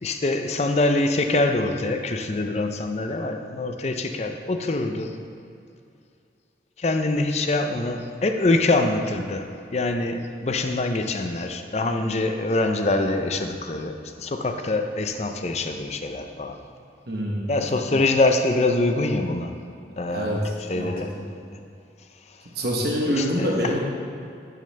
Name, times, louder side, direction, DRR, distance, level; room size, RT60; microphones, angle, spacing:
voice 1, 0.0-5.1 6.8-16.6 17.5-19.5 20.0-20.4 20.7-21.4 23.1-23.7, left 2 dB, 35° left, 6 dB, 0.5 m, -24 dB
voice 2, 17.1-17.5 20.1-21.2 22.5-23.8, equal, 60° right, -2 dB, 1.1 m, -26 dB
12.5 x 6.5 x 3.3 m, 2.5 s
head